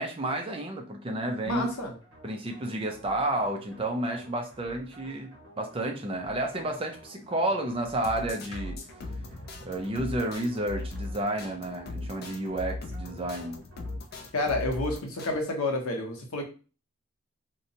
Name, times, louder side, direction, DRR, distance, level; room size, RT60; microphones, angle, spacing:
voice 1, 0.0-1.7 2.2-8.8 9.6-13.6, right 1 dB, 25° right, 3 dB, 0.4 m, -31 dB
voice 2, 1.4-1.9 14.3-16.4, left 2 dB, 80° left, 3 dB, 0.7 m, -29 dB
sound 1, 1.4-14.6, right 1 dB, 55° right, 0.9 m, -53 dB
sound 2, 7.9-15.4, left 2 dB, 45° left, 0.3 m, -39 dB
2.7 x 2.1 x 2.7 m, 0.36 s
head